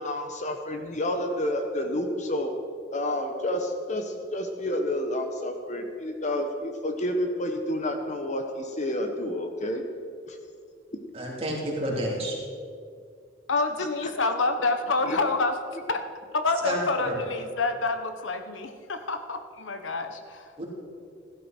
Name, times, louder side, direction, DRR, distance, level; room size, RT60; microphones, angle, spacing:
voice 1, 0.0-2.5 2.9-9.8 10.3-10.4 14.0-14.1 15.1-15.2, left 1 dB, 40° left, 5 dB, 1.0 m, -29 dB
voice 2, 11.1-12.4 16.6-17.1 20.6-20.7, equal, 30° right, -4 dB, 3.5 m, -30 dB
voice 3, 13.5-15.5 15.9-16.0 16.3-20.5, left 3 dB, 80° left, 7 dB, 1.0 m, -27 dB
16.5 x 12.5 x 4.5 m, 2.3 s
head